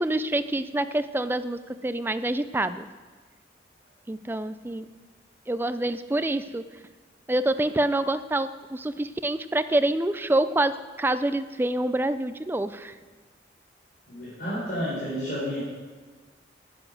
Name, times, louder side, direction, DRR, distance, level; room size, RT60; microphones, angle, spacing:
voice 1, 0.0-2.9 4.1-4.9 5.5-6.6 7.3-12.9, right 1 dB, 10° right, 12 dB, 0.3 m, -26 dB
voice 2, 14.1-15.6, equal, 50° left, -8 dB, 4.4 m, -31 dB
9.8 x 9.6 x 6.3 m, 1.4 s
head